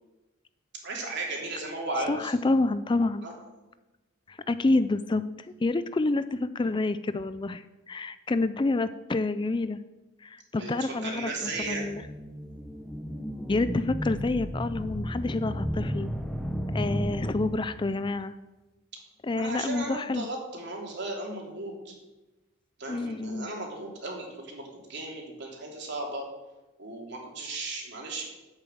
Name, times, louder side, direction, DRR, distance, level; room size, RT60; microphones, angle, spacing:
voice 1, 0.8-2.3 3.2-3.3 10.5-11.9 19.4-21.9 22.8-26.2 26.8-28.5, right 2 dB, 55° right, -1 dB, 3.2 m, -36 dB
voice 2, 2.1-3.2 4.3-5.2 5.6-9.8 10.2-12.0 13.5-16.1 16.7-18.3 19.2-20.3 22.9-23.5, left 2 dB, 25° left, 13 dB, 0.4 m, -28 dB
sound 1, 11.6-17.9, equal, ahead, 1.1 m, -33 dB
10.5 x 8.6 x 7.8 m, 1.1 s
head